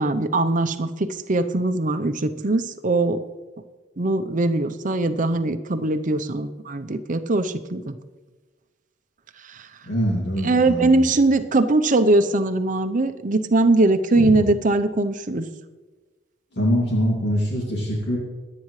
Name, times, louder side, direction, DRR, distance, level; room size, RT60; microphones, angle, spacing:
voice 1, 0.0-3.2 4.0-8.0 9.5-9.7 10.4-15.5, right 2 dB, 45° right, 9 dB, 0.7 m, -21 dB
voice 2, 9.9-11.1 14.2-14.3 16.6-18.2, equal, 60° left, -4 dB, 2.5 m, -23 dB
24.5 x 8.6 x 3.2 m, 1.3 s
head